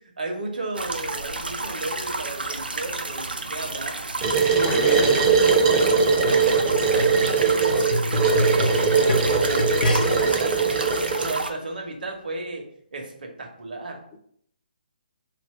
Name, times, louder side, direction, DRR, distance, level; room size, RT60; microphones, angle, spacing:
voice 1, 0.2-4.0 5.4-5.8 6.4-10.8 11.1-12.7 12.9-14.0, right 2 dB, 65° right, 3 dB, 0.9 m, -34 dB
sound 1, 0.7-11.5, right 3 dB, 85° right, 0.5 m, -31 dB
sound 2, 4.2-11.3, right 5 dB, 30° right, 0.6 m, -21 dB
voice 2, 4.5-5.3, left 4 dB, 25° left, 4 dB, 0.5 m, -30 dB
sound 3, 6.0-10.4 11.1-11.2, left 1 dB, 70° left, 0.6 m, -27 dB
2.9 x 2.5 x 4.3 m, 0.66 s
figure-of-eight pair, 140°, 5 cm